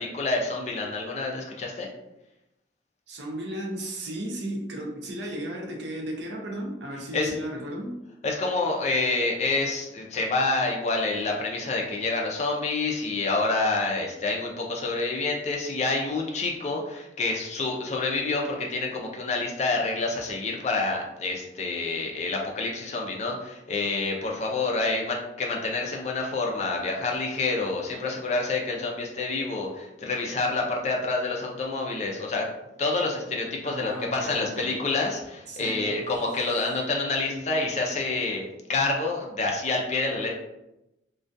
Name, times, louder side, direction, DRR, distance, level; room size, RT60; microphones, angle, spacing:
voice 1, 0.0-1.9 7.1-7.3 8.2-32.5 32.8-38.4 38.7-40.3, left 3 dB, 35° left, 0 dB, 0.4 m, -28 dB
voice 2, 3.1-8.0 33.6-34.8 35.5-35.9, right 1 dB, 60° right, 0 dB, 0.5 m, -34 dB
2.2 x 2.2 x 2.5 m, 0.91 s
head